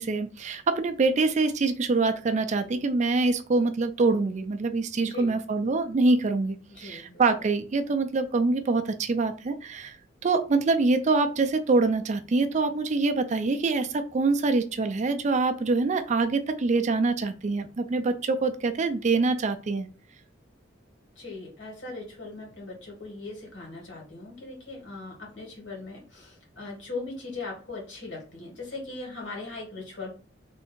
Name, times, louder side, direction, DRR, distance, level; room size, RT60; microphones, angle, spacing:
voice 1, 0.0-10.0 10.2-19.9, right 3 dB, 40° right, 8 dB, 0.4 m, -25 dB
voice 2, 5.0-5.4 6.7-7.2 21.2-30.1, left 3 dB, 70° left, -1 dB, 2.2 m, -39 dB
3.5 x 2.7 x 4.3 m, 0.38 s
head